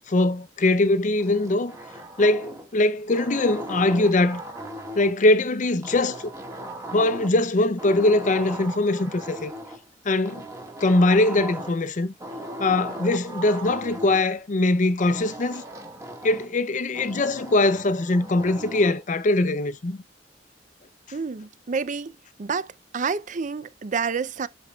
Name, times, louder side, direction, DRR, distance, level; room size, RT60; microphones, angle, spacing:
voice 1, 0.1-1.8 2.2-4.4 5.0-6.3 6.9-9.5 10.0-10.5 10.8-12.1 12.6-15.6 16.2-20.0, left 2 dB, 45° left, 0.6 m, -22 dB
sound 1, 1.2-2.7 3.1-5.2 5.8-7.5 7.8-9.8 10.2-11.8 12.2-14.2 15.0-16.5 16.9-19.0, right 1 dB, 20° right, 1.7 m, -38 dB
voice 2, 21.1-22.1 22.4-24.5, right 5 dB, 45° right, 0.5 m, -29 dB
12.5 x 4.4 x 2.3 m
head